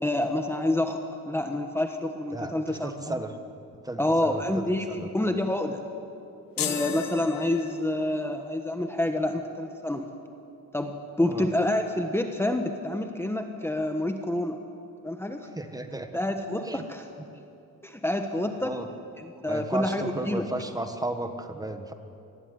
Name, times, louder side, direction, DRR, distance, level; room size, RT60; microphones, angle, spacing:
voice 1, 0.0-3.1 4.0-5.8 6.6-10.1 10.7-14.6 15.0-15.5 16.1-17.0 17.8-18.7 19.2-20.5, left 1 dB, 5° left, 5 dB, 1.3 m, -28 dB
voice 2, 2.3-3.3 3.8-4.6 4.9-5.1 11.3-11.5 15.5-16.1 16.6-16.8 18.6-18.9 19.4-21.9, right 2 dB, 10° right, 7 dB, 1.4 m, -34 dB
sound 1, 6.6-8.1, left 10 dB, 70° left, 2.0 m, -34 dB
26.5 x 20.5 x 9.6 m, 2.8 s
cardioid pair, 165°, 35 cm